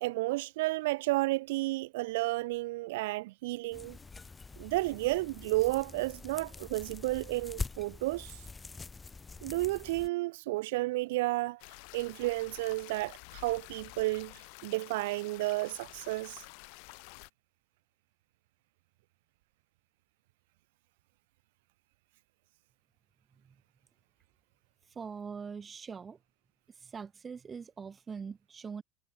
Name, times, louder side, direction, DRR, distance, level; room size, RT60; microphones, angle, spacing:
voice 1, 0.0-4.0 4.6-8.4 9.4-16.4, right 20 dB, 80° right, 0.3 m, -32 dB
sound 1, 3.7-10.1, left 4 dB, 15° left, 3.4 m, -44 dB
sound 2, 11.6-17.3, left 40 dB or more, 70° left, 2.0 m, -50 dB
voice 2, 25.0-26.2 26.8-28.8, right 6 dB, 20° right, 1.7 m, -42 dB
supercardioid pair, 125°, 0 cm